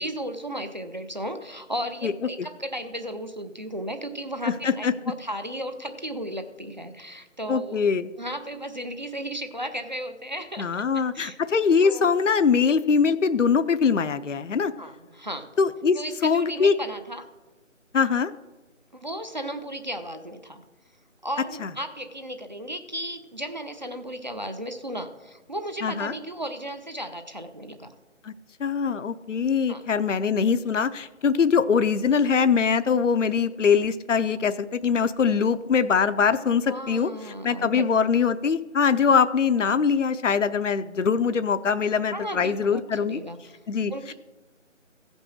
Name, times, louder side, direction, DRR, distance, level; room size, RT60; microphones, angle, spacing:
voice 1, 0.0-7.8 8.2-10.9 11.1-11.4 11.8-12.1 14.8-15.5 16.0-17.3 18.9-20.6 21.2-27.9 29.7-29.8 36.7-37.9 42.1-43.6 43.9-44.1, equal, 35° right, 7 dB, 0.6 m, -35 dB
voice 2, 4.5-4.9 7.5-8.1 10.6-14.7 15.6-16.7 17.9-18.3 21.6-21.7 25.8-26.1 28.2-28.3 28.6-37.1 37.4-43.2 43.7-43.9, left 6 dB, 70° left, 13 dB, 0.6 m, -22 dB
15.5 x 5.3 x 6.3 m, 1.2 s
figure-of-eight pair, 160°, 38 cm